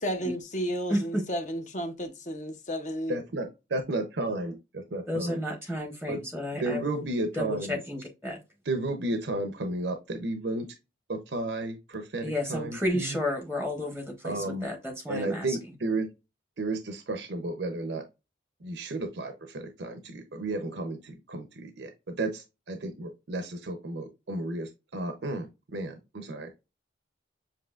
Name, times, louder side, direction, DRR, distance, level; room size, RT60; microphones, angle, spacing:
voice 1, 0.0-3.2, equal, 40° left, 0.7 m, -32 dB
voice 2, 0.9-1.2 5.1-7.0 7.3-8.4 12.2-15.6, left 1 dB, 5° left, 0.8 m, -32 dB
voice 3, 3.1-3.4 3.7-5.4 6.1-6.2 6.5-7.8 8.6-10.7 11.1-13.2 14.2-14.7 15.1-16.1 16.6-18.0 18.6-26.5, right 2 dB, 75° right, 0.7 m, -33 dB
7.4 x 2.8 x 2.4 m
head